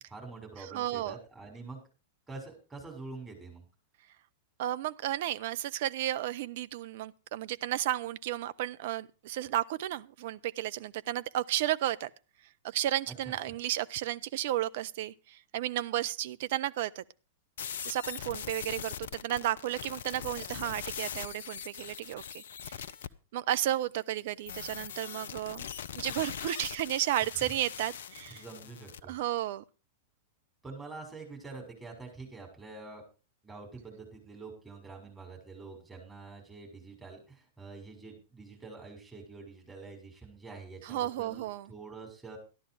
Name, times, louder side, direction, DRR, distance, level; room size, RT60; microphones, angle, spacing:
voice 1, 0.1-1.8 2.3-3.6 13.2-13.3 28.3-29.1 30.6-33.0 33.4-42.4, right 3 dB, 10° right, 6.6 m, -46 dB
voice 2, 0.7-1.2 4.6-12.1 12.6-17.0 17.8-22.7 23.3-25.6 25.9-28.4 29.1-29.6 40.8-41.7, right 13 dB, 55° right, 0.7 m, -33 dB
sound 1, 17.6-23.1 24.5-29.0, left 8 dB, 60° left, 0.7 m, -41 dB
13.5 x 11.5 x 4.9 m
figure-of-eight pair, 95°, 0 cm